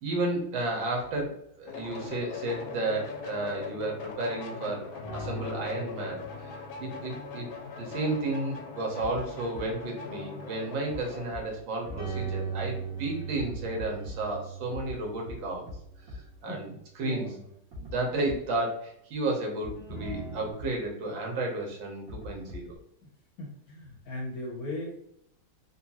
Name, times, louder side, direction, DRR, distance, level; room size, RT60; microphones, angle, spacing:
voice 1, 0.0-6.5 6.8-7.5 7.8-15.7 16.1-17.3 17.8-22.8, right 2 dB, 75° right, 0 dB, 1.7 m, -32 dB
sound 1, 1.7-11.3, left 5 dB, 85° left, 1.4 m, -41 dB
sound 2, 5.0-8.4 11.8-16.4 19.8-20.5, right 4 dB, 40° left, 0.7 m, -39 dB
sound 3, 9.0-9.2 9.5-9.6 10.9-11.0 11.3-11.4 11.8-11.9 13.3-14.1 14.7-14.9 15.3-15.4 15.7-15.8 16.1-16.2 17.7-17.9 18.3-18.4 19.6-19.7 20.0-20.1 20.6-20.7 22.1-22.8, left 3 dB, 50° right, 1.5 m, -40 dB
voice 2, 17.0-17.5 23.0-23.1 23.4-25.0, left 1 dB, 65° left, -1 dB, 1.0 m, -38 dB
4.2 x 2.3 x 2.8 m, 0.73 s
omnidirectional pair, 2.2 m